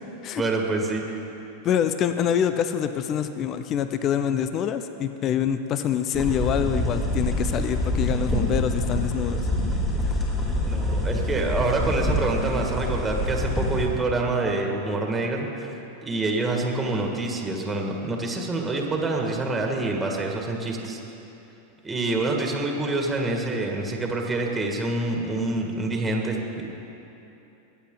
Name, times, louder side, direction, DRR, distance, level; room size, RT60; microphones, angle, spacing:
voice 1, 0.4-1.0 10.6-15.5 16.0-21.0 21.8-26.7, right 2 dB, 15° right, 1 dB, 2.0 m, -26 dB
voice 2, 1.6-9.5 10.1-10.2, left 9 dB, 40° left, 10 dB, 0.6 m, -25 dB
sound 1, 6.1-13.9, left 1 dB, 15° left, 2.9 m, -26 dB
21.5 x 8.3 x 4.0 m, 3.0 s
hypercardioid pair, 95°, 0 cm